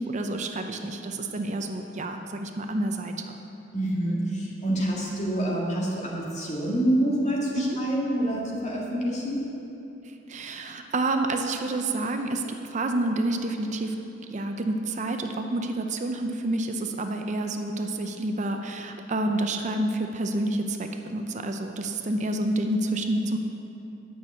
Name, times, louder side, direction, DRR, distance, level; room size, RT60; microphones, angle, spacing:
voice 1, 0.0-3.4 7.6-7.8 10.3-14.0 14.3-23.4, right 2 dB, 40° right, 5 dB, 0.6 m, -29 dB
voice 2, 3.7-9.4, right 1 dB, 40° left, -3 dB, 2.0 m, -27 dB
9.3 x 6.1 x 8.3 m, 2.8 s
head